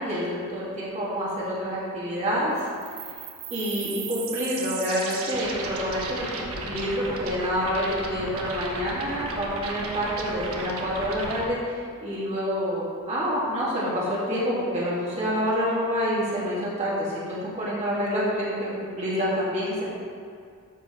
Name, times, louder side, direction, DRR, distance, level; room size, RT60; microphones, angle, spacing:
voice 1, 0.0-2.5 3.5-19.8, equal, 30° right, -8 dB, 2.6 m, -27 dB
sound 1, 2.6-11.4, right 3 dB, 70° right, 1.3 m, -35 dB
13.0 x 5.0 x 5.2 m, 2.3 s
head